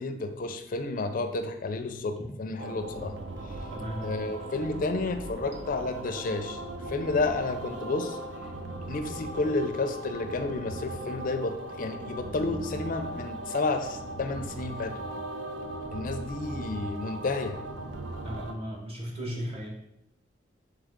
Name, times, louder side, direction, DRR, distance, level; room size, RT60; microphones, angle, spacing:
voice 1, 0.0-3.2 4.0-6.6 6.9-8.2 8.9-15.0 15.9-17.6, left 3 dB, 50° left, 8 dB, 0.4 m, -31 dB
sound 1, 2.6-18.5, right 2 dB, 85° right, 0.5 m, -38 dB
voice 2, 3.7-4.0 18.2-19.7, equal, 35° right, -2 dB, 1.0 m, -36 dB
3.6 x 3.4 x 3.5 m, 0.80 s
head